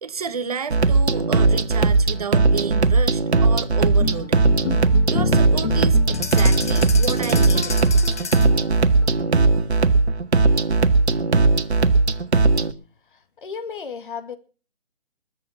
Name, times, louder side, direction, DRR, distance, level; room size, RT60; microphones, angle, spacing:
voice 1, 0.0-4.4 5.1-7.8, right 6 dB, 35° right, 1.1 m, -31 dB
sound 1, 0.7-12.7, right 3 dB, 70° right, 1.6 m, -18 dB
sound 2, 3.8-9.3, left 5 dB, 90° left, 0.9 m, -30 dB
sound 3, 6.1-8.6, left 5 dB, 15° left, 0.6 m, -32 dB
voice 2, 13.1-14.4, left 6 dB, 50° left, 2.1 m, -34 dB
21.0 x 7.7 x 7.2 m
figure-of-eight pair, 155°, 34 cm